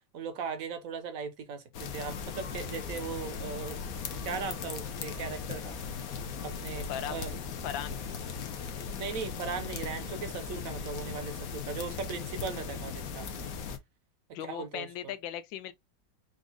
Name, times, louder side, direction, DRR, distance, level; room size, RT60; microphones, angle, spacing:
voice 1, 0.1-3.8 4.2-5.8 6.4-7.4 9.0-13.3 14.4-15.1, right 5 dB, 55° right, 1.1 m, -38 dB
sound 1, 1.7-13.8, left 6 dB, 60° left, 1.1 m, -38 dB
voice 2, 7.6-8.0 14.3-15.7, left 10 dB, 85° left, 1.4 m, -37 dB
5.1 x 2.5 x 3.5 m
omnidirectional pair, 2.0 m